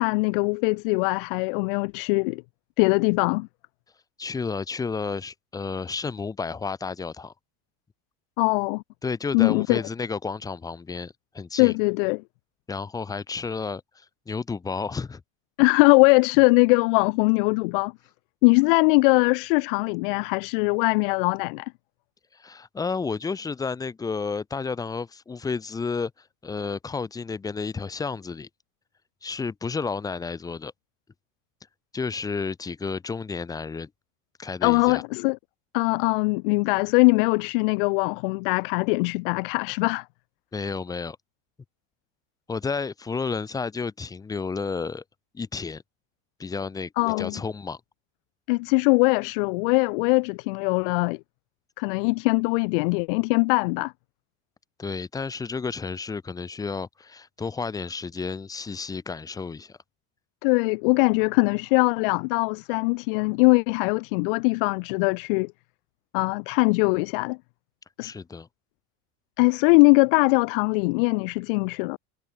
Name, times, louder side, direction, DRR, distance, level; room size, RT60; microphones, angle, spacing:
voice 1, 0.0-2.4 2.8-3.5 8.4-8.8 9.3-9.8 11.6-12.2 15.6-17.9 18.4-21.7 34.6-35.4 35.7-40.0 47.0-47.4 48.5-51.2 51.8-53.9 60.4-65.5 66.1-67.4 68.0-68.1 69.4-72.0, left 30 dB, 45° left, 0.5 m, -21 dB
voice 2, 4.2-7.3 9.0-11.7 12.7-15.2 22.3-26.1 26.4-28.5 29.2-30.7 31.9-33.9 34.4-35.0 40.5-41.2 42.5-45.0 45.3-45.8 46.4-46.9 47.2-47.8 54.8-59.8 68.0-68.5, left 4 dB, 10° left, 1.4 m, -31 dB
supercardioid pair, 180°, 40 cm